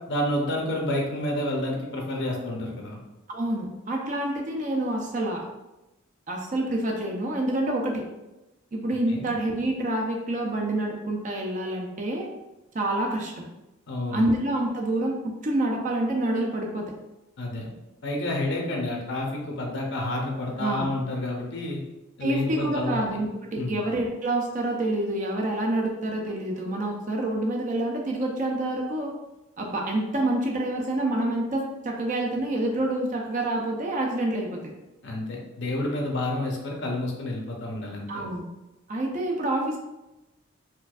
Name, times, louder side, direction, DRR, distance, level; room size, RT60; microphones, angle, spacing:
voice 1, 0.1-3.0 9.1-9.3 13.9-14.3 17.4-17.7 18.0-21.8 22.2-23.0 23.6-23.8 35.0-38.1, left 1 dB, 55° left, 0 dB, 0.7 m, -29 dB
voice 2, 3.3-5.5 6.3-8.1 8.7-12.3 12.7-13.5 14.1-16.9 20.6-20.9 22.2-29.1 29.6-34.6 38.1-38.5 38.9-39.8, right 1 dB, 35° right, 0 dB, 0.5 m, -27 dB
4.4 x 2.5 x 2.4 m, 0.99 s
head